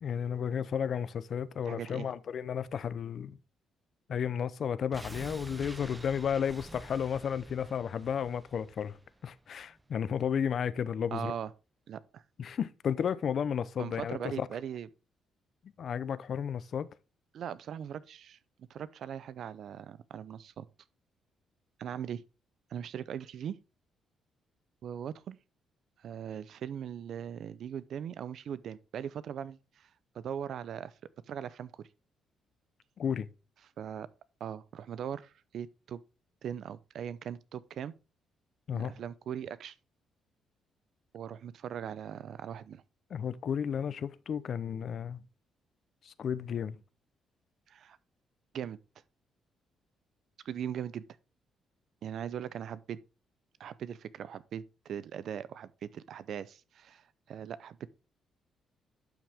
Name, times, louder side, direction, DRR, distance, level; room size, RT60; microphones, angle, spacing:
voice 1, 0.0-3.4 4.1-9.0 9.2-11.3 12.4-14.5 15.8-16.9 33.0-33.3 38.7-38.9 43.1-45.2 46.1-46.8, left 8 dB, 55° left, 0.6 m, -33 dB
voice 2, 1.7-2.1 11.1-11.5 11.9-12.2 13.8-14.9 17.3-20.7 21.8-22.2 22.7-23.6 24.8-25.4 26.0-29.9 30.1-30.9 31.3-31.7 33.8-34.1 34.4-36.0 36.4-37.9 38.7-39.8 41.1-42.8 47.7-48.0 48.5-48.8 50.4-51.0 52.0-53.0 53.6-57.9, right 9 dB, 65° right, 0.6 m, -40 dB
sound 1, 4.9-9.9 10.2-10.3, right 2 dB, 15° right, 0.7 m, -48 dB
11.5 x 6.1 x 3.5 m
cardioid pair, 90°, 0 cm